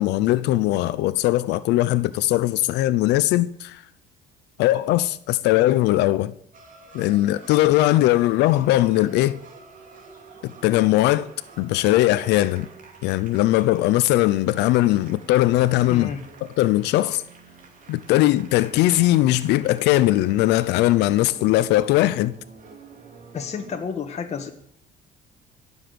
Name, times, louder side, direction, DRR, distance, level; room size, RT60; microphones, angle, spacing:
voice 1, 0.0-3.8 4.6-6.3 6.9-9.4 10.6-11.3 11.6-12.7 13.0-16.1 16.4-17.2 17.9-22.4, left 16 dB, 85° left, 0.7 m, -20 dB
sound 1, 6.5-23.8, right 4 dB, 50° right, 3.1 m, -47 dB
voice 2, 15.9-16.2 23.3-24.5, left 6 dB, 40° left, 1.5 m, -31 dB
20.5 x 7.2 x 7.9 m
cardioid pair, 110°, 17 cm